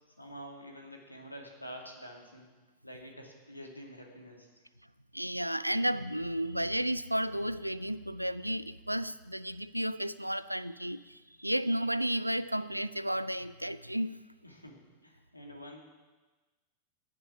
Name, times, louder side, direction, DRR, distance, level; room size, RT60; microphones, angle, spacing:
voice 1, 0.2-2.5 2.8-4.6 13.8-13.9 14.4-15.8, equal, 85° left, 1 dB, 2.4 m, -48 dB
voice 2, 5.1-14.2, equal, 90° right, 17 dB, 0.4 m, -33 dB
16.0 x 10.5 x 6.1 m, 1.3 s
figure-of-eight pair, 90°, 0 cm